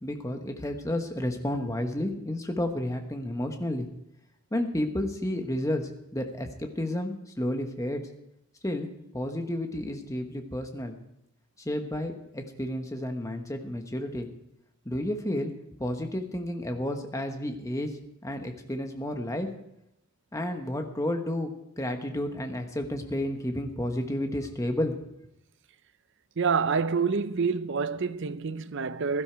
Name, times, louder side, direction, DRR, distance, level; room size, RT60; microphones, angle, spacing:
voice 1, 0.0-3.9 4.5-8.0 8.6-8.9 9.1-10.9 11.6-14.3 14.8-15.5 15.8-17.9 18.2-19.5 20.3-25.0, left 1 dB, 15° left, 1.1 m, -31 dB
voice 2, 26.4-29.2, right 5 dB, 55° right, 0.5 m, -27 dB
16.5 x 12.5 x 4.6 m
head